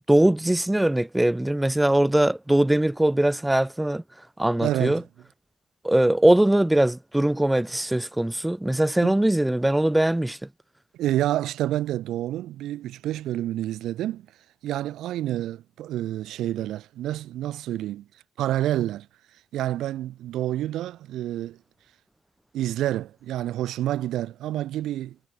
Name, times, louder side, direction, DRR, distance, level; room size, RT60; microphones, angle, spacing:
voice 1, 0.1-4.0 4.4-5.0 5.8-10.4, right 1 dB, 10° right, 1.3 m, -21 dB
voice 2, 4.6-5.0 9.0-9.1 10.9-14.3 14.6-18.1 18.4-19.1 19.5-21.6 22.5-25.3, right 13 dB, 80° right, 7.3 m, -28 dB
cardioid pair, 90°, 0 cm